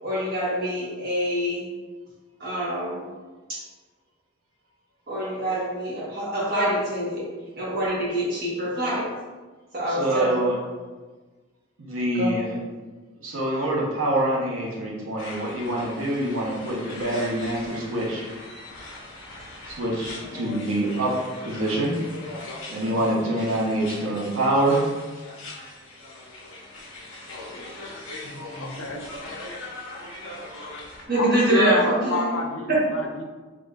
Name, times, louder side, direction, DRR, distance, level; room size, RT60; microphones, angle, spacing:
voice 1, 0.0-1.7 2.4-3.0 3.5-3.6 5.1-7.3 7.6-9.1 9.7-10.7 12.1-12.3 28.2-28.8 31.1-32.3 32.7-32.8, right 1 dB, 45° right, -6 dB, 1.3 m, -25 dB
voice 2, 9.9-10.5 11.8-12.6 13.2-18.2 19.7-22.0 22.7-24.8, right 1 dB, 90° right, -4 dB, 1.0 m, -25 dB
sound 1, 15.2-31.0, left 2 dB, 65° left, 1.3 m, -40 dB
voice 3, 28.6-29.0 31.1-33.2, left 3 dB, 90° left, 2 dB, 0.6 m, -28 dB
4.7 x 3.0 x 2.5 m, 1.3 s
head